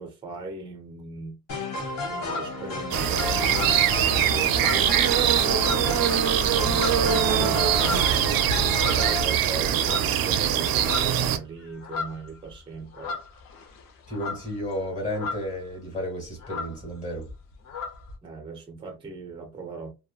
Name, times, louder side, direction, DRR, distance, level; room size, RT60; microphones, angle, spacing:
voice 1, 0.0-1.4 2.1-3.7 4.4-5.0 5.9-7.6 8.8-13.2 18.2-19.9, right 4 dB, 15° right, 0.4 m, -39 dB
sound 1, 1.5-9.2, left 2 dB, 40° left, 1.2 m, -32 dB
sound 2, 1.8-3.0 3.4-5.2 5.5-6.1 6.5-9.4 9.8-10.3 10.6-15.7 15.9-16.0 16.2-18.1, left 5 dB, 65° left, 0.8 m, -36 dB
sound 3, 2.9-11.4, right 9 dB, 70° right, 0.5 m, -22 dB
voice 2, 14.1-17.3, equal, 20° left, 1.4 m, -32 dB
2.9 x 2.1 x 2.3 m
cardioid pair, 170°, 37 cm